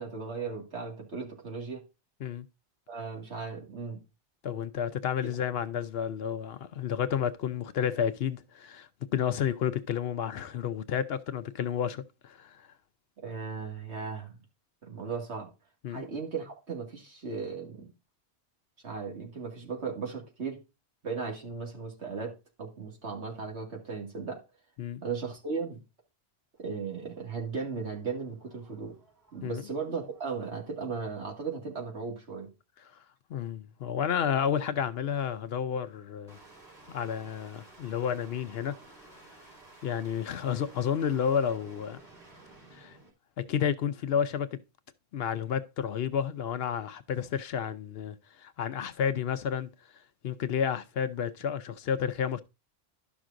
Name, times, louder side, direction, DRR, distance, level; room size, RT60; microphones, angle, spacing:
voice 1, 0.0-1.8 2.9-4.0 5.2-5.3 13.2-14.4 14.8-15.5 15.9-17.9 18.8-20.6 21.0-24.4 25.0-25.8 26.6-29.0 29.3-32.5, right 5 dB, 75° right, 2.3 m, -36 dB
voice 2, 4.4-12.7 15.8-16.0 24.8-25.0 29.4-29.6 32.8-33.0 33.3-36.4 36.9-38.8 39.8-42.0 42.7-43.0 43.4-44.6 45.1-52.4, left 8 dB, 65° left, 0.8 m, -31 dB
sound 1, 26.6-30.3 36.3-43.1, right 2 dB, 40° right, 4.1 m, -55 dB
12.0 x 6.0 x 2.5 m
omnidirectional pair, 1.2 m